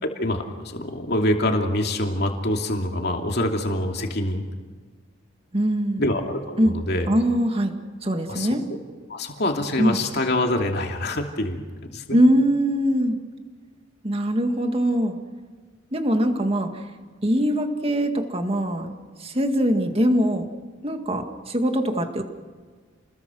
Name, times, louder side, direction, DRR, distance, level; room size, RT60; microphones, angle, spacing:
voice 1, 0.0-4.4 6.0-7.1 8.3-8.5 9.1-11.6 11.9-12.2, left 1 dB, 55° left, 3 dB, 2.8 m, -25 dB
voice 2, 5.5-6.1 6.6-6.8 7.1-7.7 8.0-8.6 9.8-10.0 12.1-13.2 14.0-15.1 15.9-16.7 17.2-18.9 19.2-20.5 20.8-22.2, equal, 30° right, 5 dB, 2.0 m, -22 dB
29.5 x 21.0 x 6.4 m, 1.5 s
head